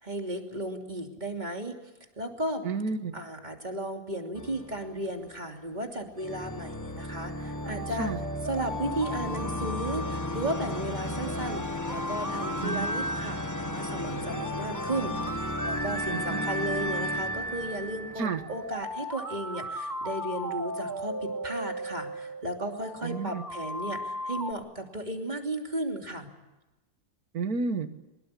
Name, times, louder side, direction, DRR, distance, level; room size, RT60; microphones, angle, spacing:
voice 1, 0.0-1.8 2.2-2.6 3.1-8.1 8.4-26.3, right 1 dB, 30° right, 3 dB, 3.2 m, -35 dB
voice 2, 2.6-3.2 8.0-8.2 12.6-12.9 16.1-16.5 18.2-18.4 23.0-23.4 27.3-27.9, right 4 dB, 90° right, 10 dB, 2.0 m, -31 dB
sound 1, 4.3-5.6 6.2-18.8, left 1 dB, 15° left, 1.4 m, -35 dB
sound 2, 7.4-24.5, right 1 dB, 15° right, 1.5 m, -36 dB
24.0 x 21.0 x 8.4 m, 1.1 s
omnidirectional pair, 1.5 m